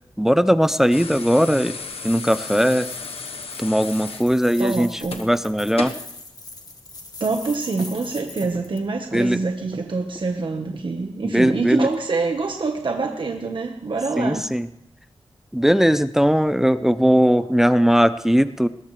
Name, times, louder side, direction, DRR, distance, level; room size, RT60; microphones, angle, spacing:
voice 1, 0.2-1.8 2.0-2.9 3.6-5.9 9.1-9.4 11.2-11.9 14.2-14.7 15.5-18.7, equal, 5° right, 13 dB, 0.6 m, -19 dB
sound 1, 0.6-8.9, left 3 dB, 40° left, 1.9 m, -42 dB
sound 2, 0.9-6.1 7.4-7.6, left 4 dB, 80° left, 1.3 m, -35 dB
voice 2, 4.6-5.2 7.2-14.4, right 3 dB, 55° right, 3 dB, 1.3 m, -25 dB
20.5 x 19.5 x 3.3 m, 0.80 s
wide cardioid pair, 105°, 10 cm